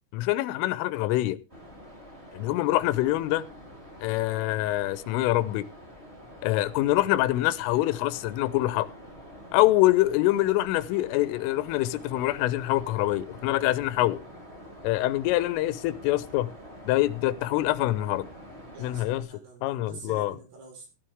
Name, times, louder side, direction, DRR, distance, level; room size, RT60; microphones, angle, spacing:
voice 1, 0.1-1.4 2.3-3.4 4.0-5.7 6.4-8.9 9.5-14.2 14.8-16.5 16.9-18.3 18.8-19.3 19.6-20.4, left 16 dB, 80° left, 3.2 m, -25 dB
sound 1, 1.5-19.2, equal, 15° right, 3.1 m, -47 dB
voice 2, 18.7-20.9, right 4 dB, 50° right, 6.1 m, -46 dB
15.5 x 11.0 x 3.5 m
omnidirectional pair, 6.0 m